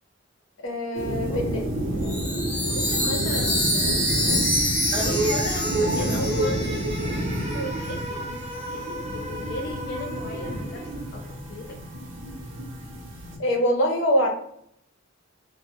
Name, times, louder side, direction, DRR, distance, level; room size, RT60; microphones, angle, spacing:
voice 1, 0.6-1.6 7.5-7.8 13.4-14.3, equal, 85° left, 1 dB, 0.6 m, -24 dB
sound 1, 0.9-13.4, right 1 dB, 80° right, 0.7 m, -30 dB
voice 2, 1.3-2.2 2.7-4.3 4.9-7.0 7.6-8.2 8.6-11.2 11.5-11.8, left 2 dB, 55° left, 1 dB, 0.3 m, -37 dB
Chime, 2.0-7.6, equal, 10° left, 0.8 m, -27 dB
sound 2, 4.9-11.5, right 2 dB, 30° right, 0.4 m, -31 dB
2.1 x 2.0 x 2.9 m, 0.74 s
head